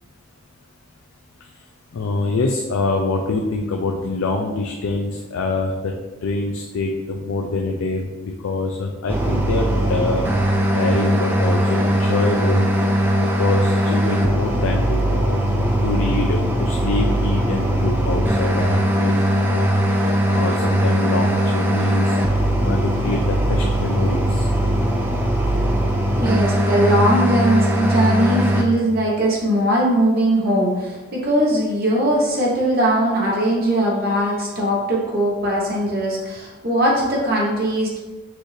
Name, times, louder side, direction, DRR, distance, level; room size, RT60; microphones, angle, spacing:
voice 1, 1.9-5.9 6.2-10.3 10.7-12.7 13.4-15.4 15.8-22.2 22.6-24.5, left 3 dB, 70° left, 2 dB, 0.4 m, -25 dB
sound 1, 9.1-28.6, equal, 10° right, 0.4 m, -20 dB
voice 2, 26.2-38.0, right 1 dB, 45° right, -3 dB, 1.0 m, -20 dB
6.1 x 2.6 x 3.2 m, 1.2 s
head